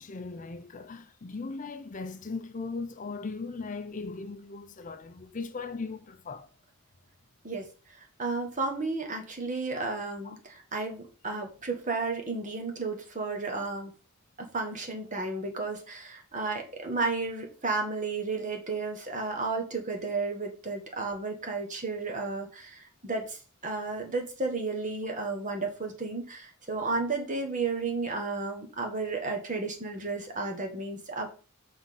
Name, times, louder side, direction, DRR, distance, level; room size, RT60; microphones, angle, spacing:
voice 1, 0.0-6.5 10.2-10.4, left 4 dB, 40° left, 0.6 m, -38 dB
voice 2, 8.2-13.9 14.4-23.4 23.6-31.3, right 3 dB, 40° right, 1.5 m, -33 dB
5.7 x 3.7 x 5.9 m
head